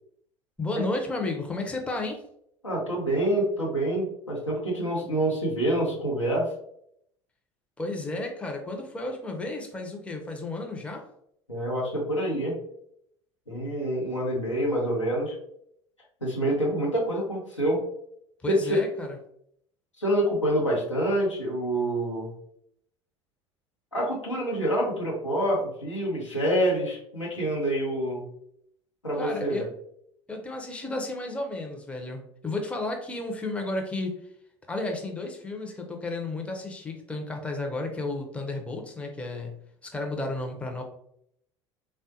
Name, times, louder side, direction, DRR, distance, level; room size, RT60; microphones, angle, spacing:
voice 1, 0.6-2.2 7.8-11.0 18.4-19.2 29.2-29.7 30.3-34.2 34.7-40.8, left 2 dB, 10° left, 2 dB, 0.5 m, -33 dB
voice 2, 2.6-6.5 11.5-12.6 13.5-15.3 16.2-17.8 18.5-18.8 20.0-22.3 23.9-28.2 29.0-29.7, right 1 dB, 90° left, -5 dB, 0.8 m, -27 dB
3.4 x 2.2 x 2.6 m, 0.71 s
figure-of-eight pair, 65°, 15 cm